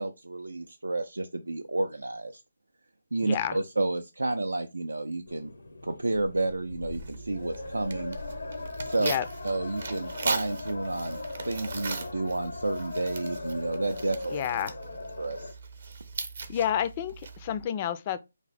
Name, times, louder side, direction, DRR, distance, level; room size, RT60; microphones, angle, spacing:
voice 1, 0.0-2.4 3.1-5.5 5.8-8.2 8.8-9.1 9.4-14.4 15.2-15.6, right 2 dB, 85° right, 0.3 m, -31 dB
voice 2, 3.2-3.6 9.0-9.2 14.3-14.7 16.5-18.2, left 10 dB, 30° left, 0.3 m, -29 dB
sound 1, 5.3-15.5, left 3 dB, 80° left, 0.7 m, -39 dB
Tearing, 6.9-17.6, right 4 dB, 60° right, 0.7 m, -39 dB
2.9 x 2.1 x 4.1 m
figure-of-eight pair, 150°, 0 cm